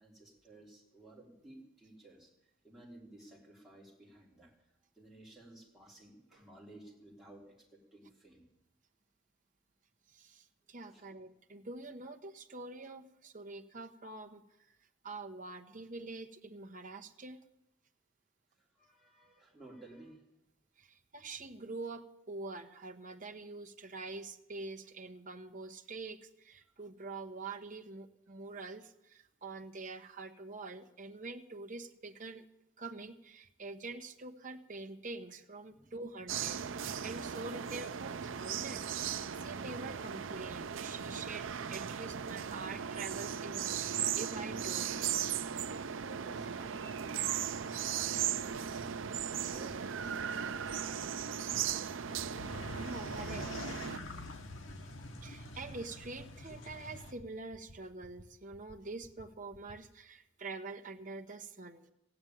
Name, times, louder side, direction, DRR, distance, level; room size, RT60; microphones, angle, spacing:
voice 1, 0.0-2.3 2.6-4.5 5.0-8.5 10.9-11.1 18.8-20.2 35.7-35.9 46.2-51.6 54.1-54.3, right 2 dB, ahead, -5 dB, 3.4 m, -55 dB
voice 2, 10.1-14.4 15.0-17.4 20.8-32.4 32.8-38.9 39.4-45.0 52.8-53.4 55.2-61.9, right 3 dB, 40° right, 5 dB, 1.0 m, -45 dB
sound 1, 36.3-54.0, right 8 dB, 75° right, 0.5 m, -37 dB
sound 2, 48.2-48.3 48.5-48.7 49.0-49.2 49.5-49.7 50.0-50.2 50.5-50.8 51.0-51.3 51.5-51.7 52.0-52.2 52.5-52.7 53.0-53.2 53.5-53.8 54.0-54.2 54.5-54.8 55.0-55.2 55.5-55.7 56.0-56.3 56.5-56.7 57.0-57.2 57.5-57.7 58.0-58.2 58.5-58.7 59.0-59.2 59.5-59.8, equal, 30° left, 1.1 m, -56 dB
sound 3, 52.1-57.1, left 2 dB, 80° left, 1.4 m, -46 dB
15.0 x 8.8 x 9.2 m, 0.87 s
head